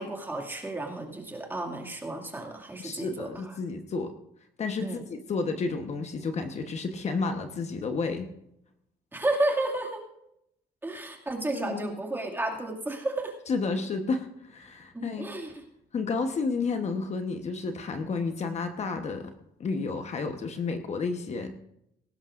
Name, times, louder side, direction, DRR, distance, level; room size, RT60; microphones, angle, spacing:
voice 1, 0.0-3.3 4.8-5.1 9.1-10.0 10.8-13.4 14.9-15.6, right 2 dB, 10° right, 1 dB, 2.3 m, -32 dB
voice 2, 2.8-4.1 4.6-8.3 11.5-11.9 13.5-15.3 15.9-19.3 19.6-21.6, left 4 dB, 40° left, 6 dB, 1.1 m, -31 dB
18.0 x 16.0 x 2.6 m, 0.81 s
cardioid pair, 110°, 17 cm